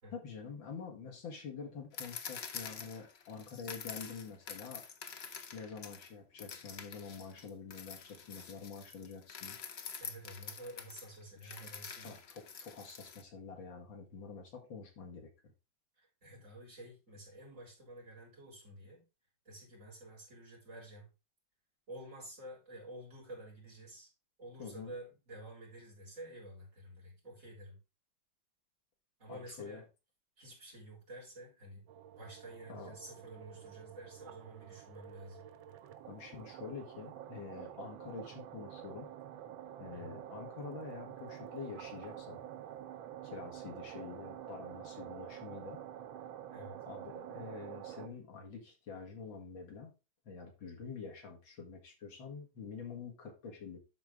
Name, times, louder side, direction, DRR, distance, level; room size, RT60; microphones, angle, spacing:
voice 1, 0.1-4.8 5.5-9.6 11.4-11.7 12.0-15.3 24.6-24.9 29.3-29.8 32.7-33.0 36.1-39.1 39.8-42.4 43.2-45.8 46.9-49.9 50.3-53.8, left 5 dB, 80° left, 2 dB, 2.6 m, -47 dB
sound 1, 1.9-6.1 6.4-13.2, left 6 dB, 55° left, 0.7 m, -47 dB
voice 2, 10.0-12.1 16.0-19.0 19.5-21.1 21.9-24.1 24.4-27.8 29.2-29.8 30.4-31.8 32.2-35.4 39.9-40.2 46.5-46.8, right 1 dB, 40° right, -3 dB, 4.0 m, -50 dB
sound 2, 31.9-48.1, right 11 dB, 90° right, 1.5 m, -48 dB
11.5 x 4.1 x 3.7 m, 0.28 s
omnidirectional pair, 2.1 m